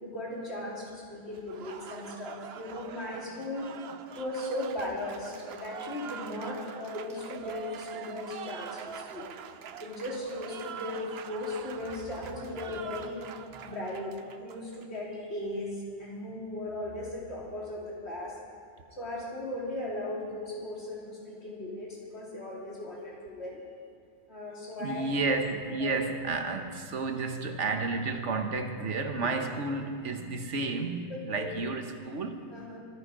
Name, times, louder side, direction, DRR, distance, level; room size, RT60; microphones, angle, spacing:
voice 1, 0.0-3.7 4.1-9.4 9.8-18.4 18.9-23.6 24.3-25.1 25.8-25.9 31.1-31.5 32.5-32.8, left 1 dB, 65° left, -4 dB, 3.6 m, -37 dB
Applause, 1.3-15.0, right 7 dB, 65° right, 0.9 m, -44 dB
voice 2, 24.8-32.5, right 3 dB, 85° right, 6 dB, 1.4 m, -31 dB
24.0 x 9.8 x 5.1 m, 2.4 s
omnidirectional pair, 1.2 m